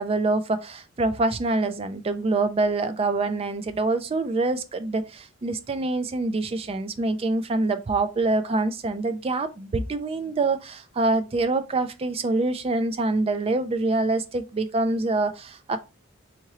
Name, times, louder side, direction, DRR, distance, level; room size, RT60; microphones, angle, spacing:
voice 1, 0.0-15.8, right 2 dB, 30° right, 0.4 m, -25 dB
3.7 x 2.9 x 2.9 m
head